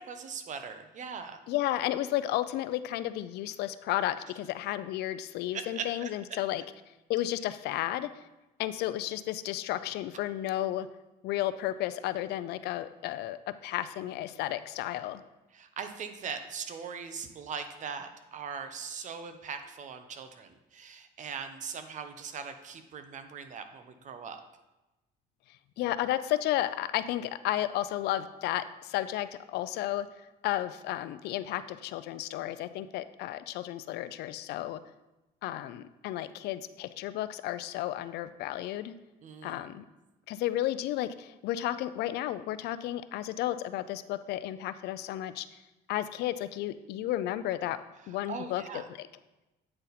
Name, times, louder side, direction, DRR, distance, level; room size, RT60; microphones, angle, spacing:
voice 1, 0.0-1.4 5.5-6.1 15.5-24.4 39.2-39.7 48.3-48.8, right 6 dB, 45° right, 8 dB, 0.7 m, -40 dB
voice 2, 1.5-6.6 7.1-8.1 8.6-10.9 11.2-15.2 25.8-30.1 30.4-34.8 35.4-38.9 39.4-39.8 40.3-45.5 45.9-47.8 48.1-49.1, left 13 dB, 80° left, 13 dB, 0.4 m, -33 dB
8.7 x 4.1 x 4.0 m, 1.0 s
cardioid pair, 110°, 17 cm